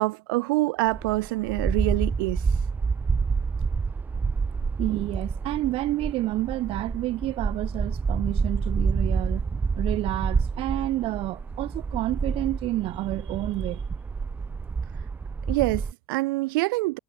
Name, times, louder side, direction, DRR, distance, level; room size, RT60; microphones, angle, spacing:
voice 1, 0.0-2.6 15.5-17.0, right 22 dB, 85° right, 0.5 m, -26 dB
sound 1, 0.9-15.9, right 5 dB, 15° right, 0.3 m, -28 dB
voice 2, 4.8-9.5 9.8-13.8, right 17 dB, 55° right, 0.8 m, -29 dB
supercardioid pair, 110°, 11 cm